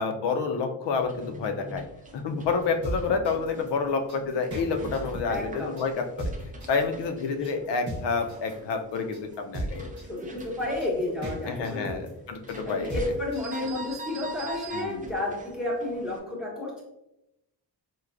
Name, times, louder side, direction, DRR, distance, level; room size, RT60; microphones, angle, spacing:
voice 1, 0.0-1.9 2.1-6.3 6.7-9.9 11.5-13.0 14.7-15.1, left 4 dB, 75° left, 6 dB, 0.5 m, -29 dB
sound 1, 0.9-16.2, right 2 dB, 20° right, 0.3 m, -44 dB
sound 2, 2.6-13.6, right 1 dB, 40° right, 0.8 m, -36 dB
voice 2, 5.3-5.7 7.3-7.5 10.1-11.9 12.7-16.8, left 1 dB, ahead, -3 dB, 0.8 m, -31 dB
4.5 x 2.1 x 2.4 m, 0.88 s
wide cardioid pair, 140°, 43 cm